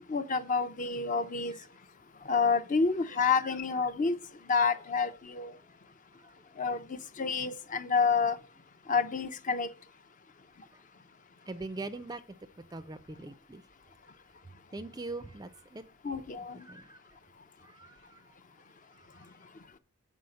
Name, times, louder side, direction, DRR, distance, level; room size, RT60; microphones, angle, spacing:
voice 1, 0.1-1.5 2.3-4.1 4.5-5.5 6.6-8.4 8.9-9.7 16.0-16.6, left 5 dB, 35° left, 0.5 m, -28 dB
voice 2, 6.2-7.1 10.7-10.8 11.5-12.2 12.7-13.6 14.7-15.8 16.4-17.0 17.6-18.3 18.9-19.6, right 2 dB, 15° right, 0.4 m, -43 dB
6.9 x 4.9 x 6.4 m
head